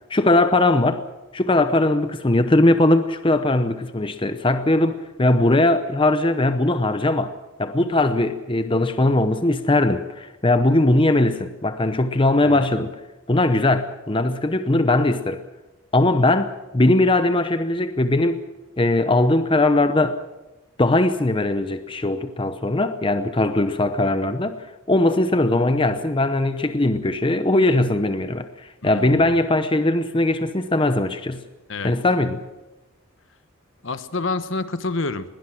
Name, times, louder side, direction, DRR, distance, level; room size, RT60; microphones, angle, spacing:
voice 1, 0.1-1.0 1.3-7.3 7.6-12.9 13.3-15.4 15.9-18.4 18.8-20.2 20.8-24.6 24.9-31.4 31.8-32.4, left 2 dB, 25° left, 10 dB, 0.8 m, -20 dB
voice 2, 28.8-29.3 31.7-32.0 33.8-35.3, left 3 dB, 60° left, 12 dB, 1.1 m, -28 dB
21.0 x 17.5 x 7.7 m, 1.1 s
head